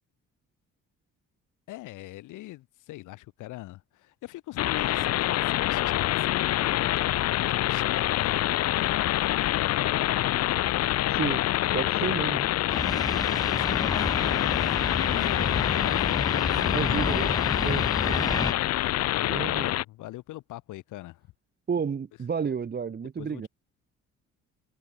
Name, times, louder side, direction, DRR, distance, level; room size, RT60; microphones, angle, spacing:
voice 1, 1.7-9.8 10.4-10.7 11.6-12.2 12.9-17.1 18.2-19.1 19.5-21.3 23.2-23.5, left 17 dB, 90° left, 1.2 m, -41 dB
sound 1, 4.6-19.8, left 14 dB, 55° left, 0.5 m, -26 dB
voice 2, 11.1-11.4 11.7-12.5 16.7-17.3 17.6-18.5 19.3-19.7 21.7-23.5, right 6 dB, 35° right, 1.1 m, -31 dB
sound 2, 12.7-18.5, left 3 dB, 15° left, 0.6 m, -31 dB
cardioid pair, 90°, 30 cm